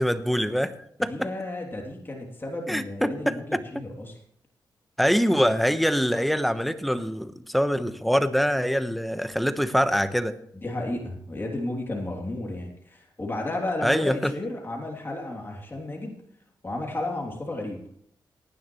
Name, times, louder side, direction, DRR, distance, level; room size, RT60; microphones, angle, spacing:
voice 1, 0.0-1.3 2.7-3.9 5.0-10.4 13.8-14.3, equal, ahead, 10 dB, 1.2 m, -24 dB
voice 2, 1.1-4.1 10.5-16.2 16.6-17.8, left 2 dB, 25° left, -1 dB, 3.1 m, -33 dB
18.5 x 10.5 x 3.2 m, 0.68 s
cardioid pair, 70°, 8 cm